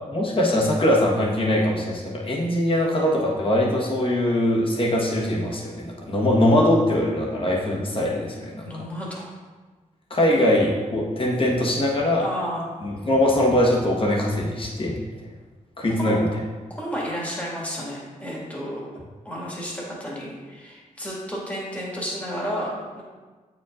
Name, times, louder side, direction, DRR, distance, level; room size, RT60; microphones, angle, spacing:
voice 1, 0.1-8.7 10.1-12.3 12.8-15.0 15.8-16.3, left 1 dB, 40° left, -2 dB, 1.3 m, -22 dB
voice 2, 8.6-9.3 10.3-10.5 12.2-12.7 16.0-16.2 16.7-18.9 19.2-23.0, equal, 10° left, -5 dB, 2.0 m, -32 dB
8.2 x 4.8 x 2.5 m, 1.3 s
cardioid pair, 90°, 14 cm